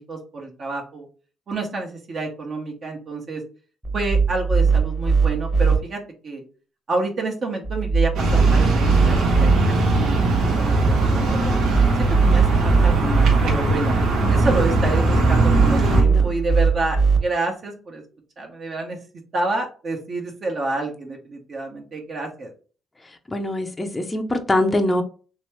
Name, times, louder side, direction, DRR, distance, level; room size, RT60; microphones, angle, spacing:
voice 1, 0.1-1.1 1.5-3.4 3.9-6.4 6.9-9.5 9.9-11.5 12.0-13.9 14.3-18.0 18.4-19.0 19.3-22.5, right 2 dB, 50° right, 1.1 m, -28 dB
sound 1, 3.8-5.8 7.6-9.6 11.5-13.4 15.3-17.2, right 5 dB, 10° right, 1.0 m, -19 dB
sound 2, 8.1-16.0, right 2 dB, 90° right, 1.2 m, -20 dB
voice 2, 15.5-16.2 23.3-25.0, left 1 dB, 15° left, 0.6 m, -24 dB
3.4 x 3.0 x 3.1 m
cardioid pair, 90°, 0 cm